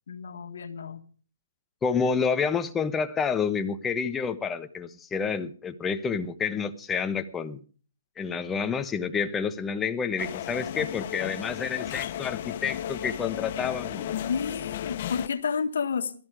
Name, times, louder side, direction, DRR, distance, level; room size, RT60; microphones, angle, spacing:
voice 1, 0.1-1.0 14.3-16.1, left 6 dB, 75° left, 1.7 m, -30 dB
voice 2, 1.8-7.6 8.2-14.1, left 6 dB, 10° left, 1.1 m, -29 dB
sound 1, 10.2-15.3, left 11 dB, 45° left, 0.8 m, -34 dB
16.0 x 13.5 x 4.9 m
hypercardioid pair, 150°, 0 cm